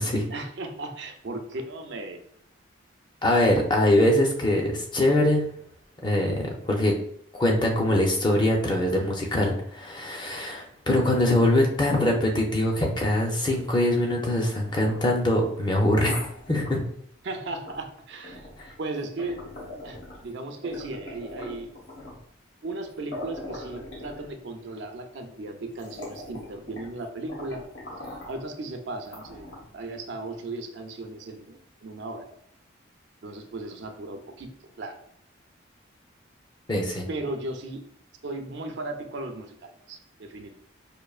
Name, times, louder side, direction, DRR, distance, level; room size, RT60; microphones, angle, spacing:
voice 1, 0.3-2.2 17.2-18.5 18.8-19.4 19.8-21.7 22.6-27.7 28.3-32.3 33.2-34.5 34.8-35.0 37.1-37.8 38.2-40.5, right 2 dB, 65° right, 5 dB, 0.5 m, -36 dB
voice 2, 3.2-5.4 6.0-6.9 7.4-16.2 16.5-16.8 36.7-37.1, left 1 dB, 25° left, 0 dB, 0.6 m, -23 dB
sound 1, 14.7-16.8 17.7-17.9 18.2-20.3 20.6-22.3 22.8-22.9 23.1-24.6 25.3-25.4 25.7-27.0 27.3-28.4 29.0-29.8, left 1 dB, 70° left, 1.0 m, -41 dB
5.1 x 2.6 x 2.3 m, 0.68 s
head